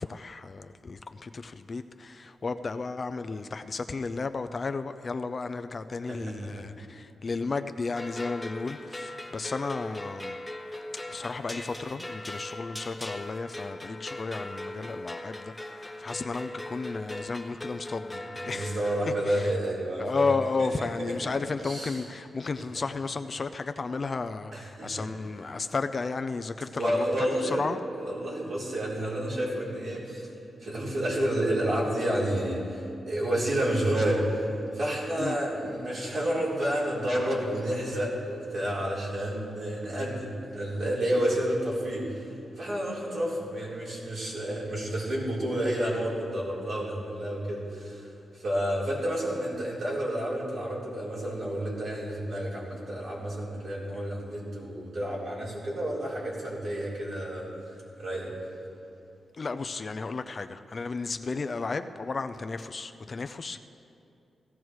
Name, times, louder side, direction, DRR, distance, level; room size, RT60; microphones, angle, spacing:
voice 1, 0.0-10.4 11.1-18.8 19.3-19.5 20.0-27.8 35.2-35.4 59.3-63.6, left 4 dB, 35° left, 9 dB, 0.4 m, -33 dB
voice 2, 6.1-6.6 18.3-21.3 21.6-22.0 24.5-25.1 26.8-30.3 30.6-57.5 58.0-58.4, right 1 dB, 60° right, -6 dB, 3.9 m, -30 dB
sound 1, 8.0-19.0, left 1 dB, 5° left, 0.7 m, -39 dB
17.0 x 15.0 x 3.2 m, 2.6 s
wide cardioid pair, 150°, 0 cm